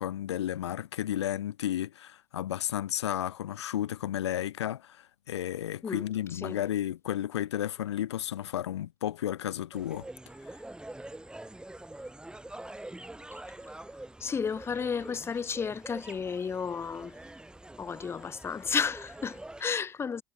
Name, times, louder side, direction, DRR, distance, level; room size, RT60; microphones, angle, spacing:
voice 1, 0.0-10.1, left 11 dB, 80° left, 1.0 m, -33 dB
sound 1, 9.7-19.6, right 1 dB, 5° right, 1.7 m, -45 dB
voice 2, 14.2-17.2 17.8-20.2, left 6 dB, 20° left, 0.5 m, -32 dB
hypercardioid pair, 85°, 14 cm